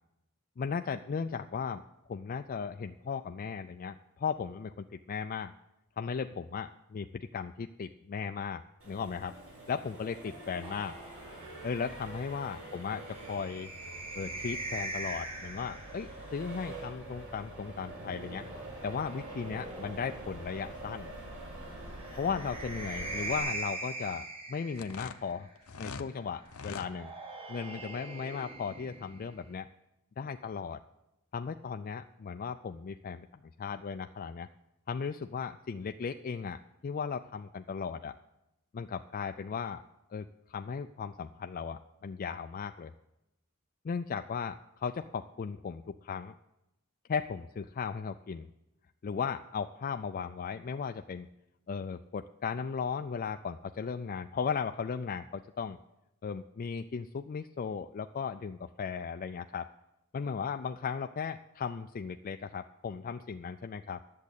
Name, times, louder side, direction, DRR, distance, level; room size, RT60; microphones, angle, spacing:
voice 1, 0.6-1.8 2.1-5.5 6.0-9.4 9.7-11.0 11.6-13.7 14.1-18.5 18.8-21.1 22.1-25.5 25.8-27.1 27.5-29.7 30.2-30.8 31.3-33.3 33.6-34.5 34.9-38.1 38.7-39.8 40.1-42.9 43.8-46.3 47.1-48.5 49.0-51.3 51.7-55.8 56.2-59.7 60.1-64.0, left 6 dB, 40° left, 7 dB, 0.3 m, -36 dB
Accelerating revving vroom, 8.8-23.4, right 1 dB, 65° right, 4.4 m, -45 dB
sound 1, 10.6-16.2 17.5-20.5 21.9-25.3 26.6-29.5, right 2 dB, 25° right, 1.5 m, -42 dB
sound 2, 24.7-26.1 26.5-26.9, left 5 dB, 70° left, 0.7 m, -43 dB
10.5 x 7.4 x 8.2 m, 0.91 s
head